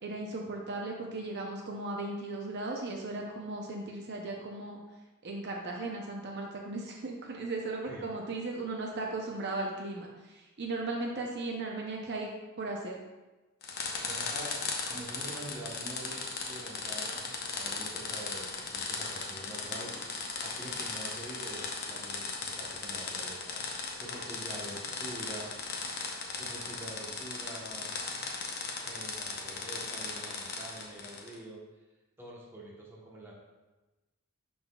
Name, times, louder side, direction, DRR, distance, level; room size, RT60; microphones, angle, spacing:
voice 1, 0.0-4.8 5.2-13.0, right 2 dB, 50° right, 0 dB, 0.7 m, -37 dB
sound 1, 13.6-31.4, left 4 dB, 45° left, 0.8 m, -37 dB
voice 2, 13.9-17.3 17.5-25.6 26.4-27.9 28.8-31.6 32.2-33.3, right 1 dB, 10° right, -4 dB, 1.1 m, -46 dB
11.0 x 4.0 x 2.3 m, 1.1 s
head